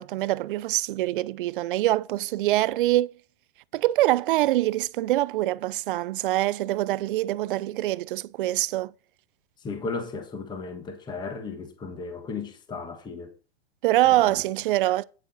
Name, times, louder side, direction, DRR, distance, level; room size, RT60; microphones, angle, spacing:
voice 1, 0.0-3.1 3.7-8.9 13.8-15.0, right 16 dB, 55° right, 0.5 m, -24 dB
voice 2, 9.6-13.3 14.1-14.4, left 4 dB, 15° left, 1.3 m, -35 dB
9.1 x 8.2 x 4.1 m
supercardioid pair, 155°, 32 cm